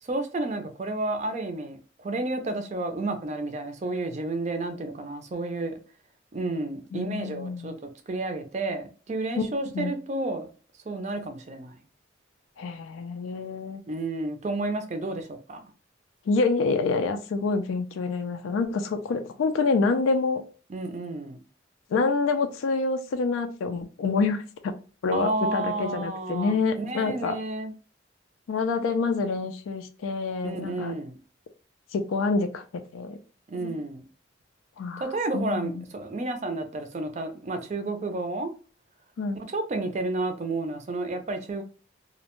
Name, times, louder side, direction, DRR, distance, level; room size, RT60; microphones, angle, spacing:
voice 1, 0.0-5.8 6.3-7.7 8.1-10.5 10.9-11.8 13.9-15.7 20.7-21.4 25.1-27.7 30.4-31.2 33.5-34.0 35.0-38.5 39.3-41.6, right 2 dB, 35° right, 0.4 m, -31 dB
voice 2, 6.9-7.8 9.4-9.5 9.7-9.9 12.6-13.8 16.3-20.4 21.9-24.7 25.0-27.3 28.5-30.9 31.9-32.6 32.9-33.2 33.6-33.7 34.8-35.1 35.3-35.8 39.2-39.4, left 4 dB, 90° left, 0.3 m, -27 dB
2.5 x 2.1 x 2.9 m
head